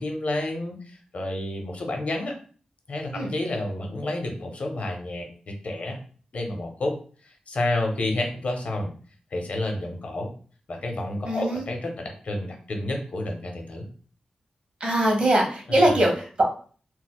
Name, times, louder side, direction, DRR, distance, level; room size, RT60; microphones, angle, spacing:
voice 1, 0.0-2.4 2.9-6.0 6.3-7.0 7.2-8.9 9.3-10.3 10.7-13.9 15.7-16.0, left 2 dB, 65° left, 3 dB, 0.7 m, -30 dB
voice 2, 11.2-11.6 14.8-16.4, right 1 dB, 50° right, 0 dB, 0.9 m, -22 dB
4.1 x 2.2 x 2.2 m, 0.42 s
wide cardioid pair, 115°, 2 cm